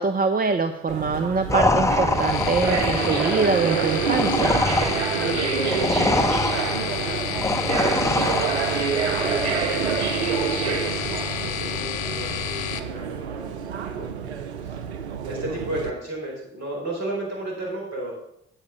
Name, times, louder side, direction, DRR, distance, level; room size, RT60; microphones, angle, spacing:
voice 1, 0.0-4.5, right 4 dB, 25° right, 7 dB, 0.7 m, -24 dB
sound 1, 0.9-15.9, right 8 dB, 90° right, 0.5 m, -27 dB
sound 2, 1.5-8.9, left 2 dB, 10° left, 0.8 m, -24 dB
sound 3, 2.1-12.8, left 9 dB, 70° left, 0.7 m, -30 dB
voice 2, 5.1-6.0 6.7-9.7 10.4-14.8 15.2-18.1, right 1 dB, 55° right, -3 dB, 4.6 m, -34 dB
8.2 x 5.8 x 6.7 m, 0.77 s
hypercardioid pair, 45°, 32 cm